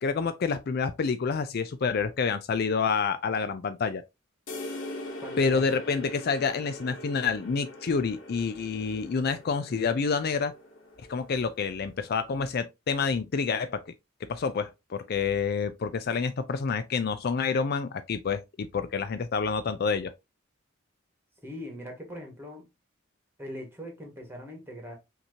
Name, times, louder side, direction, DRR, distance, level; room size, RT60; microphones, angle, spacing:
voice 1, 0.0-4.0 5.4-10.5 11.1-13.9 14.3-20.1, left 5 dB, 50° left, 0.4 m, -28 dB
sound 1, 4.5-12.0, left 1 dB, 70° left, 1.3 m, -42 dB
voice 2, 5.2-5.8 21.4-22.6 23.4-24.9, equal, 10° right, 1.6 m, -41 dB
5.7 x 2.9 x 2.8 m
head